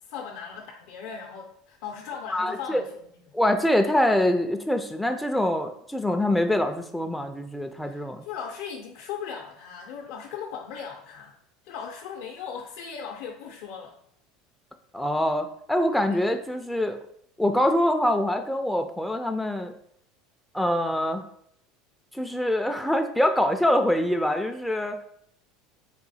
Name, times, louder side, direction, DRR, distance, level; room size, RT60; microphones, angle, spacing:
voice 1, 0.0-3.2 7.8-11.3 11.6-14.0 16.1-16.3, left 7 dB, 70° left, 0 dB, 0.5 m, -38 dB
voice 2, 2.3-2.8 3.3-8.2 14.9-17.0 17.4-19.7 20.5-21.2 22.1-25.0, left 1 dB, 5° left, 5 dB, 0.3 m, -24 dB
3.6 x 2.7 x 4.0 m, 0.70 s
supercardioid pair, 120°, 0 cm